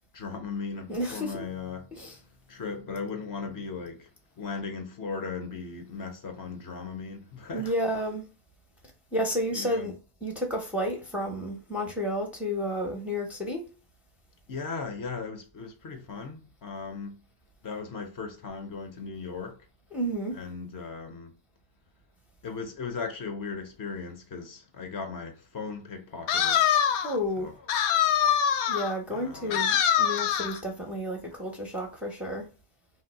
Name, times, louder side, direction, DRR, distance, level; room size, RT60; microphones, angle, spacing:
voice 1, 0.1-2.2 2.5-4.1 4.4-7.7 9.5-9.9 14.5-17.2 17.6-19.6 20.3-21.3 22.4-26.6 27.4-27.5 29.1-29.6, left 5 dB, 40° left, 0.7 m, -37 dB
voice 2, 0.9-1.4 1.9-2.2 7.5-8.3 9.1-13.7 19.9-20.4 27.0-27.5 28.7-32.5, equal, 5° right, 0.5 m, -31 dB
sound 1, 26.3-27.2 27.7-28.9 29.5-30.6, left 9 dB, 80° left, 0.6 m, -24 dB
2.6 x 2.1 x 4.0 m
cardioid pair, 130°, 50 cm